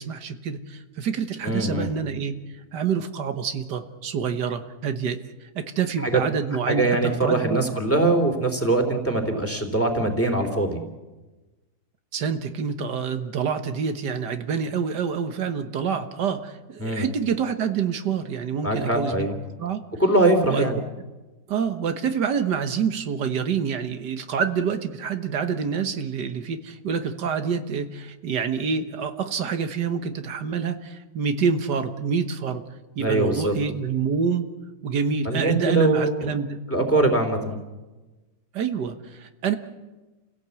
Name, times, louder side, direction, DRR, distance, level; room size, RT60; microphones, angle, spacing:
voice 1, 0.0-2.3 2.7-7.6 12.1-19.3 19.6-19.8 20.4-20.7 21.5-32.6 33.0-34.5 34.8-36.6 38.5-39.6, right 6 dB, 85° right, 8 dB, 1.9 m, -27 dB
voice 2, 1.4-1.9 6.0-6.2 6.7-10.8 16.8-17.0 18.6-19.4 20.0-20.8 33.0-33.6 35.2-36.3 36.7-37.6, right 2 dB, 10° left, 3 dB, 3.1 m, -22 dB
29.0 x 16.5 x 8.3 m, 1.2 s
omnidirectional pair, 1.8 m